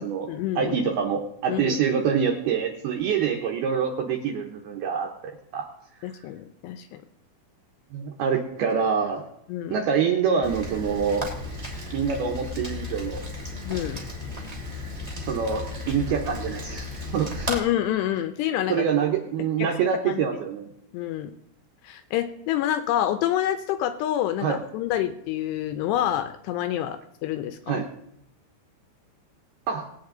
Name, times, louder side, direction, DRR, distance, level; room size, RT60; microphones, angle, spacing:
voice 1, 0.0-0.8 1.5-1.8 6.0-7.0 9.5-9.8 13.7-14.0 17.5-18.9 19.6-19.7 20.1-20.2 20.9-21.3 21.8-27.8, left 12 dB, 85° left, 10 dB, 2.4 m, -27 dB
voice 2, 0.6-5.7 7.9-9.2 9.7-11.3 11.9-13.2 15.2-17.5 18.7-20.6 24.4-24.6 27.7-27.9 29.7-29.8, right 7 dB, 75° right, 1 dB, 2.5 m, -26 dB
Rain, 10.4-17.6, left 2 dB, 20° right, 1.0 m, -34 dB
20.5 x 8.8 x 3.9 m, 0.74 s
omnidirectional pair, 5.5 m